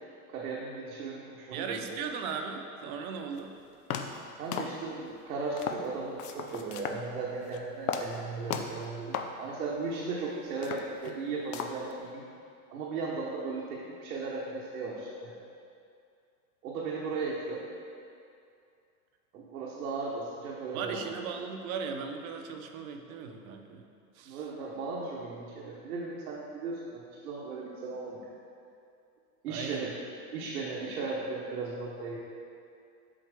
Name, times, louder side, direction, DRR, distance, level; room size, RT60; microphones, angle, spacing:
voice 1, 0.3-2.0 4.3-12.3 12.7-15.4 16.6-17.6 19.3-21.0 24.3-28.3 29.4-29.9 30.3-32.2, right 4 dB, 90° right, -5 dB, 1.0 m, -36 dB
voice 2, 1.5-3.5 20.7-23.8 24.2-24.4 29.5-29.9, right 6 dB, 65° right, 4 dB, 0.7 m, -37 dB
sound 1, 3.4-3.5 3.9-4.3 4.5-5.1 5.6-5.9 6.2-7.0 7.4-7.6 7.9-8.2 8.5-8.8 9.1-9.4 9.8-9.9 10.5-11.2 11.5-11.9, left 7 dB, 80° left, 0.6 m, -35 dB
7.5 x 4.3 x 3.4 m, 2.4 s
hypercardioid pair, 115°, 45 cm